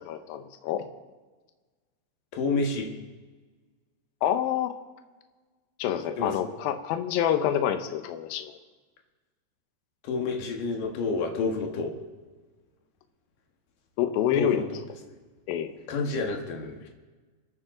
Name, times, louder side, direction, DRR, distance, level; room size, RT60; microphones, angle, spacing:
voice 1, 0.1-0.9 4.2-4.7 5.8-8.5 14.0-14.6 15.5-15.7, left 10 dB, 75° left, 7 dB, 2.3 m, -27 dB
voice 2, 2.3-2.9 6.2-6.3 10.0-11.9 14.3-14.8 15.9-16.9, left 3 dB, 55° left, 1 dB, 2.8 m, -29 dB
27.0 x 9.6 x 3.9 m, 1.3 s
omnidirectional pair, 5.3 m